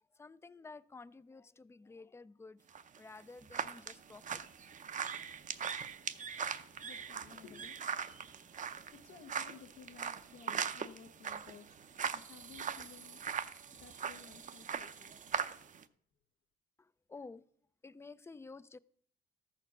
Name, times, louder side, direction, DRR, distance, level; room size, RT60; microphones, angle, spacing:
voice 1, 0.0-2.6 3.0-5.1 16.8-17.4 17.8-18.8, left 3 dB, 15° left, 0.3 m, -52 dB
sound 1, 2.7-15.8, right 7 dB, 40° right, 0.6 m, -41 dB
voice 2, 5.8-15.7, left 7 dB, 75° left, 1.0 m, -58 dB
13.5 x 4.5 x 6.0 m
cardioid pair, 90°, 20 cm